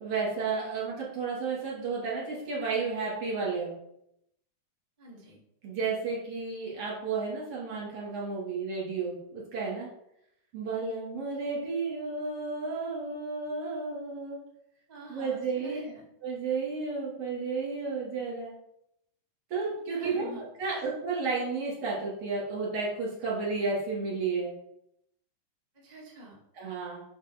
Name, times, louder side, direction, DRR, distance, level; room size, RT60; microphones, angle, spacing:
voice 1, 0.0-3.7 5.6-9.9 10.5-14.4 15.1-15.8 16.2-18.5 19.5-20.3 20.6-24.5 26.5-27.0, right 4 dB, 45° right, -5 dB, 3.1 m, -32 dB
voice 2, 5.0-5.4 14.9-16.0 19.9-20.9 25.7-26.4, right 2 dB, 20° right, -4 dB, 1.1 m, -46 dB
6.7 x 5.1 x 5.2 m, 0.79 s
omnidirectional pair, 3.9 m